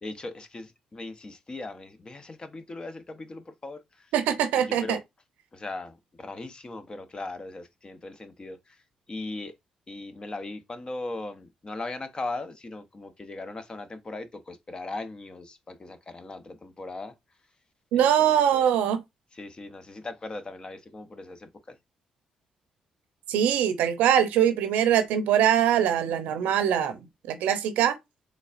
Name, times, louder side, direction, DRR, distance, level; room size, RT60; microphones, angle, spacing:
voice 1, 0.0-3.8 4.5-5.0 5.5-8.6 9.1-9.5 9.9-17.1 17.9-18.6 19.4-21.7, left 2 dB, 35° left, 0.8 m, -39 dB
voice 2, 4.1-5.0 17.9-19.0 23.3-27.0 27.3-28.0, right 9 dB, 80° right, 0.6 m, -22 dB
4.0 x 3.4 x 2.5 m
supercardioid pair, 55°, 3 cm